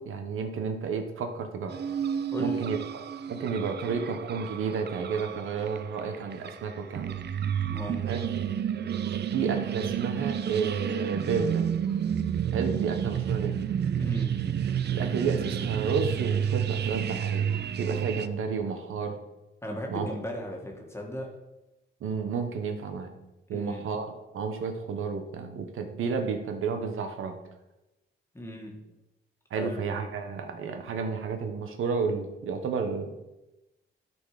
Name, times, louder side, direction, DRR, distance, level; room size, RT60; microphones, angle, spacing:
voice 1, 0.0-1.8 2.4-2.8 3.3-7.2 8.1-8.2 9.3-11.6 12.5-13.6 14.9-17.5 17.8-19.2 19.9-20.1 22.0-23.1 23.5-24.1 24.3-27.4 29.5-33.1, right 5 dB, 75° right, 5 dB, 1.2 m, -31 dB
sound 1, 1.7-18.3, right 8 dB, 55° right, 0.6 m, -30 dB
voice 2, 2.3-2.6 7.7-8.2 14.0-14.5 19.6-21.3 23.5-23.9 28.3-28.8 29.6-29.9, equal, 10° left, 0 dB, 1.8 m, -37 dB
12.5 x 4.5 x 4.9 m, 0.99 s
cardioid pair, 105°, 21 cm